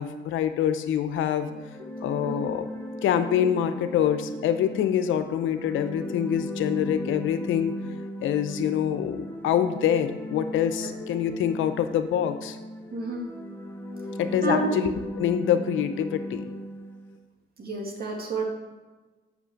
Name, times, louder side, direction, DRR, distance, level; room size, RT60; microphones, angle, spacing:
voice 1, 0.0-1.5 2.0-2.7 3.0-7.7 8.2-12.6 14.2-14.9 15.2-16.5, left 9 dB, 85° left, 10 dB, 0.7 m, -25 dB
sound 1, 1.4-17.2, equal, 10° left, 1.0 m, -37 dB
voice 2, 12.9-13.3 14.4-14.7 17.6-18.4, right 3 dB, 50° right, 1 dB, 2.2 m, -29 dB
6.1 x 5.8 x 7.1 m, 1.2 s
cardioid pair, 90°, 20 cm